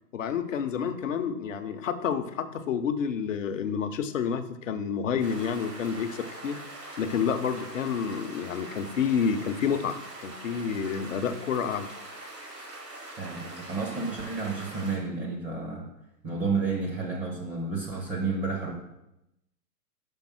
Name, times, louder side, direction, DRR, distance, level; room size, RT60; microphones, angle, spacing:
voice 1, 0.1-6.6 7.0-10.0 10.2-11.9, left 7 dB, 50° left, 9 dB, 0.8 m, -29 dB
sound 1, 5.2-15.0, right 2 dB, 80° right, 2.9 m, -43 dB
voice 2, 13.2-15.9 16.2-18.7, right 4 dB, 15° right, -2 dB, 0.9 m, -31 dB
5.3 x 5.2 x 6.1 m, 0.88 s
figure-of-eight pair, 125°, 48 cm